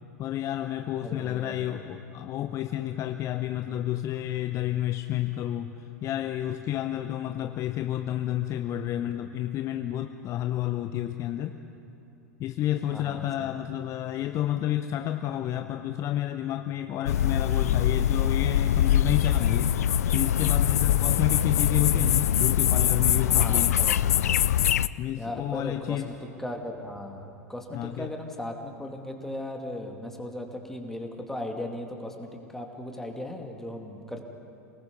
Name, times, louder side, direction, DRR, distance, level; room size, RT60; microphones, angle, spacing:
voice 1, 0.2-11.6 12.4-19.7 20.1-23.8 25.0-26.1 27.7-28.1, left 12 dB, 35° left, 8 dB, 0.8 m, -30 dB
voice 2, 1.0-1.8 12.9-13.5 23.3-24.2 25.2-26.0 26.4-34.2, left 1 dB, 5° left, 2 dB, 2.4 m, -37 dB
Newport Lakes summer morning, 17.1-24.9, left 10 dB, 65° left, 0.5 m, -23 dB
29.0 x 19.5 x 5.4 m, 2.9 s
figure-of-eight pair, 90°, 9 cm